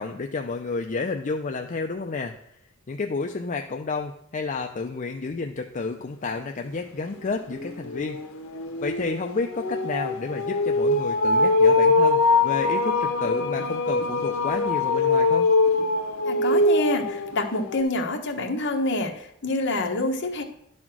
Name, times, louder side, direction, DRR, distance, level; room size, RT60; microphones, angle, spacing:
voice 1, 0.0-2.3 2.9-8.2 8.8-15.5, left 4 dB, 35° left, 3 dB, 0.5 m, -30 dB
sound 1, 6.6-6.7 7.0-17.8, left 3 dB, 75° left, 1.0 m, -23 dB
voice 2, 16.2-20.4, left 2 dB, 60° left, 3 dB, 1.2 m, -27 dB
11.0 x 4.3 x 6.1 m, 0.71 s
head